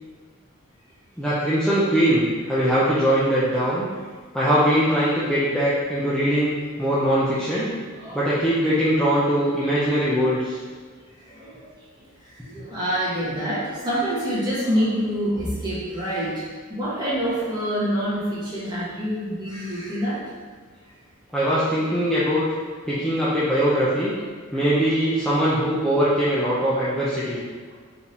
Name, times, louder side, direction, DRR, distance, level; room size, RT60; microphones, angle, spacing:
voice 1, 1.2-3.9 4.3-7.7 8.1-10.6 21.3-22.4 22.9-24.2 24.5-27.4, equal, 5° left, -10 dB, 0.5 m, -21 dB
voice 2, 12.5-16.3 16.7-20.2 24.6-24.7, equal, 20° right, -9 dB, 1.4 m, -26 dB
4.5 x 3.4 x 2.8 m, 1.5 s
head